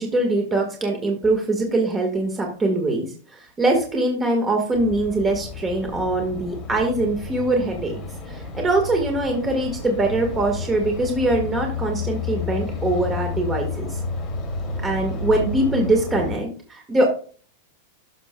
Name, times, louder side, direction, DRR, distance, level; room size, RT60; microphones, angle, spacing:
voice 1, 0.0-8.0 8.3-14.0 14.8-17.0, right 2 dB, 10° right, 2 dB, 1.5 m, -23 dB
sound 1, 4.7-16.4, left 4 dB, 20° left, 2.7 m, -31 dB
12.0 x 6.6 x 2.2 m, 0.41 s
supercardioid pair, 175°, 0 cm